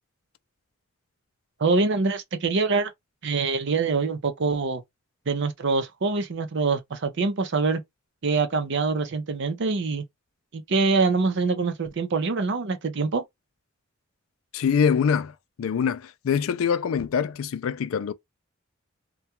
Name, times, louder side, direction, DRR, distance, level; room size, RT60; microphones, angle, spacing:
voice 1, 1.6-2.9 3.2-4.8 5.3-7.8 8.2-10.0 10.5-13.2, right 4 dB, 60° right, 0.6 m, -24 dB
voice 2, 14.5-18.1, left 7 dB, 80° left, 0.4 m, -24 dB
2.3 x 2.3 x 2.8 m
head